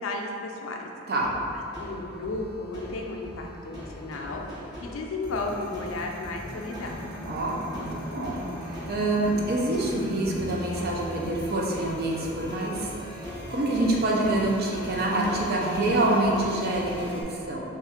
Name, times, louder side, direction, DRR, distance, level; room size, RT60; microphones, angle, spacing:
voice 1, 0.0-0.9 1.8-4.5 4.8-7.0, left 2 dB, 75° left, 0 dB, 0.5 m, -33 dB
sound 1, 1.2-17.2, equal, 20° right, 1.0 m, -39 dB
Bowed string instrument, 6.5-11.5, left 1 dB, ahead, 0.5 m, -39 dB
voice 2, 7.2-17.6, right 2 dB, 50° right, -2 dB, 0.6 m, -27 dB
3.5 x 2.4 x 4.2 m, 2.7 s
head